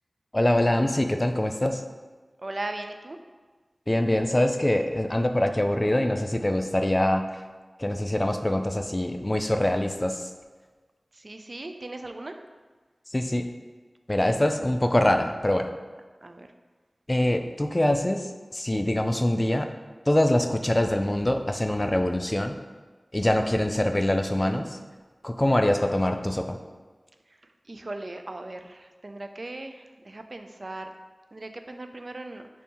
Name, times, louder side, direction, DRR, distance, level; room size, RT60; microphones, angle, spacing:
voice 1, 0.3-1.8 3.9-7.2 7.8-10.3 13.1-13.5 14.1-15.7 17.1-19.7 20.1-22.6 23.1-24.8 25.2-26.6, left 1 dB, 30° left, 6 dB, 0.3 m, -24 dB
voice 2, 2.4-3.2 11.1-12.4 16.2-16.5 27.7-30.9 31.3-32.5, right 2 dB, 60° right, 6 dB, 0.3 m, -38 dB
3.5 x 2.6 x 4.1 m, 1.4 s
wide cardioid pair, 40°, 0 cm